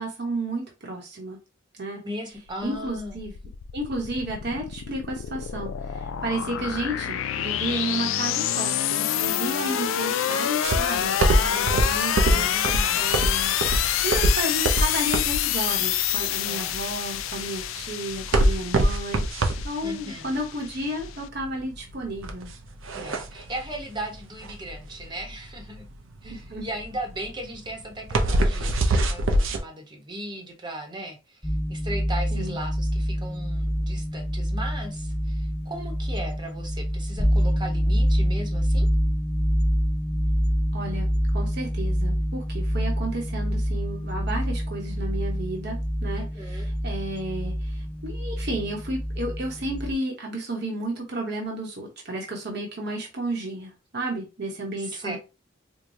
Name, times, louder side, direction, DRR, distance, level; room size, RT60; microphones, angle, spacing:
voice 1, 0.0-1.4 1.7-2.0 2.6-3.3 3.7-12.4 13.0-13.5 14.0-19.2 19.6-22.5 26.2-26.7 32.3-32.6 40.7-41.1 41.3-55.2, right 1 dB, 55° right, 1.0 m, -32 dB
voice 2, 2.0-3.2 12.3-13.1 16.4-16.7 19.8-20.3 22.9-25.9 26.2-38.9 46.2-46.7 54.8-55.2, right 1 dB, 25° right, 0.9 m, -37 dB
sound 1, 2.5-21.2, left 11 dB, 85° left, 0.3 m, -27 dB
sound 2, 10.6-29.6, right 1 dB, 85° right, 0.6 m, -24 dB
sound 3, 31.4-49.9, equal, 10° left, 0.4 m, -26 dB
4.6 x 2.2 x 2.7 m
head